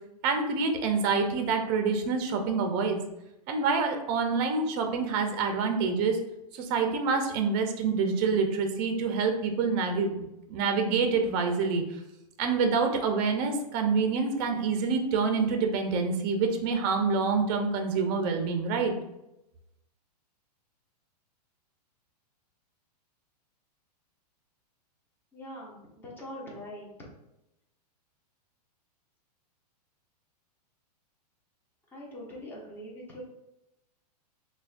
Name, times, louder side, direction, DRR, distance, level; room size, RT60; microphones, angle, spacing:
voice 1, 0.2-3.0 3.5-6.2 6.5-10.1 10.5-11.8 12.4-18.9, right 5 dB, 35° right, 5 dB, 0.5 m, -27 dB
voice 2, 25.3-26.9 31.9-33.2, equal, 10° left, -4 dB, 0.7 m, -43 dB
5.8 x 2.2 x 2.4 m, 0.91 s
supercardioid pair, 155°, 21 cm